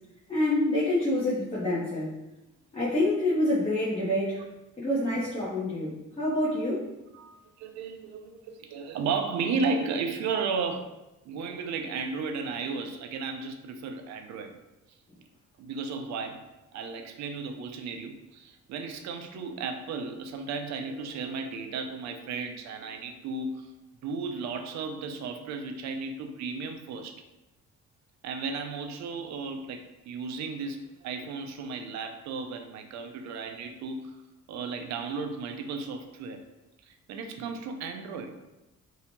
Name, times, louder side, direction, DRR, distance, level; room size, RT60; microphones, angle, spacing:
voice 1, 0.3-2.1 2.7-4.4 4.8-6.9, left 1 dB, 20° left, -9 dB, 0.7 m, -27 dB
voice 2, 7.1-10.9 11.2-14.5 15.6-16.5 16.7-23.7 24.0-27.2 28.2-34.2 34.5-36.4 36.8-38.4, right 4 dB, 65° right, 5 dB, 0.4 m, -34 dB
2.7 x 2.1 x 2.9 m, 0.97 s
cardioid pair, 90°, 30 cm